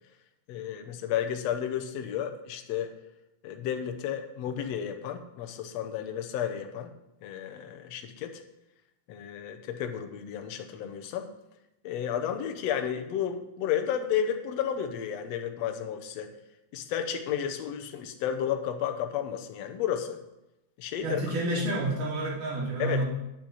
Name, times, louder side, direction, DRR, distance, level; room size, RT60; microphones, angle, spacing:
voice 1, 0.5-2.9 3.4-6.9 7.2-8.4 9.1-11.3 11.8-16.3 16.7-20.2 20.8-21.2 22.8-23.1, left 9 dB, 75° left, 6 dB, 1.5 m, -32 dB
voice 2, 21.0-23.1, right 1 dB, 60° right, -4 dB, 4.4 m, -29 dB
9.1 x 7.3 x 7.7 m, 0.89 s
omnidirectional pair, 4.3 m